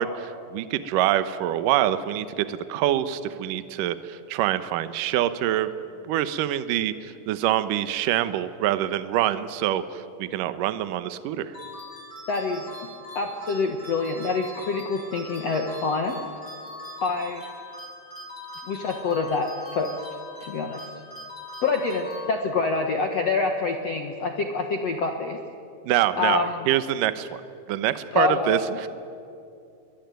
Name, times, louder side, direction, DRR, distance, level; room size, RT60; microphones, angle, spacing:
voice 1, 0.0-5.7 6.1-11.6 25.8-27.3 27.7-28.9, right 12 dB, 80° right, 12 dB, 2.0 m, -25 dB
sound 1, 11.5-22.8, left 1 dB, 25° left, 7.1 m, -41 dB
voice 2, 12.3-12.6 13.1-16.2 17.0-17.4 18.7-19.9 20.4-20.8 21.6-25.4 26.2-26.7 28.1-28.8, left 4 dB, 70° left, 4 dB, 1.5 m, -26 dB
28.0 x 22.5 x 9.3 m, 2.5 s
omnidirectional pair, 5.2 m